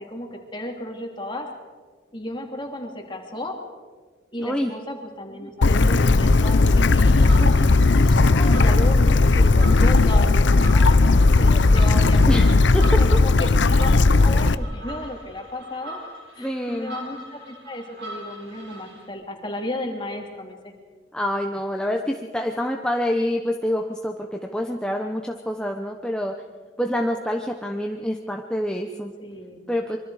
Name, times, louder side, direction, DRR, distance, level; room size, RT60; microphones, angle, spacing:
voice 1, 0.0-1.5 2.1-3.6 4.3-10.3 10.7-12.4 12.8-16.0 16.3-20.7 29.2-29.6, left 1 dB, 25° left, 1 dB, 3.0 m, -34 dB
voice 2, 4.4-4.7 12.3-12.8 16.4-17.0 21.1-26.3 26.8-29.1 29.7-30.0, equal, 5° left, 2 dB, 0.9 m, -26 dB
Bird / Stream, 5.6-14.6, left 3 dB, 75° left, 0.7 m, -16 dB
sound 1, 7.1-19.1, right 1 dB, 65° right, 5.2 m, -41 dB
25.0 x 23.5 x 4.9 m, 1.5 s
head